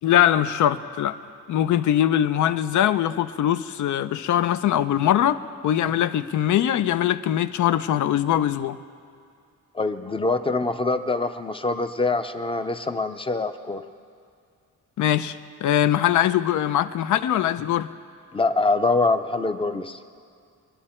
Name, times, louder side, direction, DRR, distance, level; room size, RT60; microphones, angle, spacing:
voice 1, 0.0-1.2 1.5-8.8 15.0-17.9, left 11 dB, 85° left, 12 dB, 0.6 m, -22 dB
voice 2, 9.7-13.8 18.3-20.0, left 3 dB, 20° left, 8 dB, 0.5 m, -24 dB
24.0 x 11.0 x 4.4 m, 2.2 s
wide cardioid pair, 160°, 29 cm